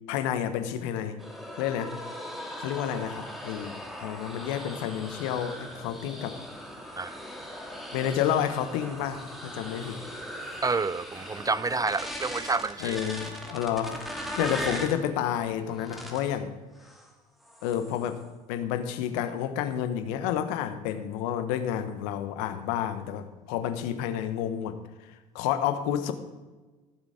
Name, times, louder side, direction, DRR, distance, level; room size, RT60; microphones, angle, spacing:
voice 1, 0.1-1.2 1.5-1.9 2.6-6.4 7.9-10.0 12.8-16.5 17.6-18.2 18.5-24.8 25.3-26.1, left 10 dB, 75° left, 10 dB, 1.2 m, -30 dB
sound 1, 1.2-15.0 15.7-16.3 16.8-17.1 17.4-18.2, equal, ahead, 2.5 m, -39 dB
sound 2, 8.5-16.0, right 1 dB, 85° right, 3.2 m, -54 dB
voice 2, 10.6-13.0, right 4 dB, 20° right, 18 dB, 0.4 m, -29 dB
16.0 x 7.5 x 5.1 m, 1.2 s
hypercardioid pair, 65°, 20 cm